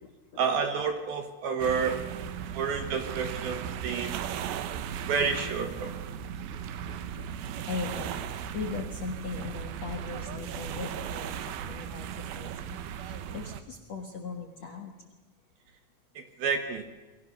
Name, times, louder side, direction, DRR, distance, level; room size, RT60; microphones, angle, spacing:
voice 1, 0.4-2.0 2.5-4.2 5.1-5.9 16.2-16.8, right 5 dB, 65° right, 7 dB, 2.4 m, -29 dB
sound 1, 1.6-13.6, right 9 dB, 90° right, 2.1 m, -37 dB
voice 2, 6.5-14.9, left 4 dB, 65° left, 2 dB, 1.6 m, -40 dB
29.5 x 22.5 x 6.6 m, 1.2 s
omnidirectional pair, 5.9 m